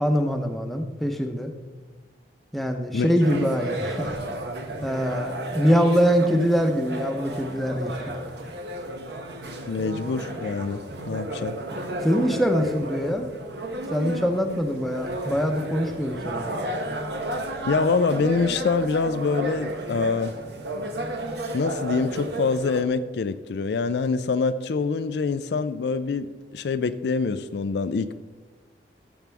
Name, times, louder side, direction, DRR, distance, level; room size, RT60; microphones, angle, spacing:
voice 1, 0.0-1.5 2.5-4.1 4.8-8.2 12.0-13.3 13.9-16.5, equal, ahead, 4 dB, 0.8 m, -23 dB
sound 1, 3.2-22.8, right 1 dB, 70° right, 1.1 m, -33 dB
voice 2, 9.7-11.5 17.7-20.3 21.5-28.2, left 4 dB, 70° left, 12 dB, 0.4 m, -25 dB
14.0 x 7.3 x 3.5 m, 1.3 s
head